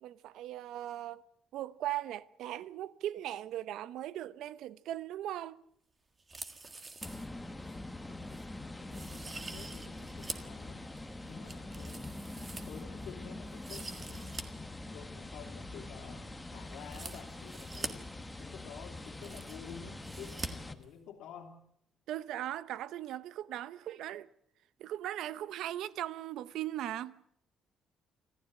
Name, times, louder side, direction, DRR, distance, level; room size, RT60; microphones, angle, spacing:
voice 1, 0.0-1.2 1.5-5.6 22.1-24.3 24.8-27.1, right 12 dB, 75° right, 0.8 m, -39 dB
sound 1, 6.2-7.3 7.7-7.8 8.3-8.4 8.9-10.5 11.0-13.1 13.5-14.4 14.7-14.8 16.8-17.9 18.7-18.8 19.0-19.7 20.0-20.5 20.8-20.9, right 3 dB, 20° right, 1.6 m, -44 dB
sound 2, 7.0-20.7, left 2 dB, 10° left, 1.2 m, -44 dB
voice 2, 8.1-10.9 11.2-12.1 12.7-14.5 14.9-18.1 18.4-21.6, left 8 dB, 80° left, 2.8 m, -51 dB
sound 3, 11.3-19.9, left 6 dB, 40° left, 1.6 m, -58 dB
25.5 x 15.0 x 8.6 m
cardioid pair, 160°, 0 cm